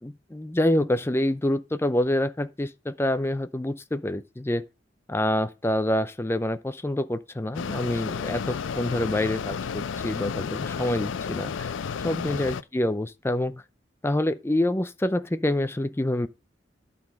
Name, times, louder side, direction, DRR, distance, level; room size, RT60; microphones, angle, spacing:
voice 1, 0.0-4.6 5.1-11.7 12.0-13.6 14.0-16.3, left 1 dB, 15° left, 0.5 m, -27 dB
Mechanisms, 7.5-12.6, left 6 dB, 80° left, 0.4 m, -32 dB
11.0 x 4.1 x 5.2 m
head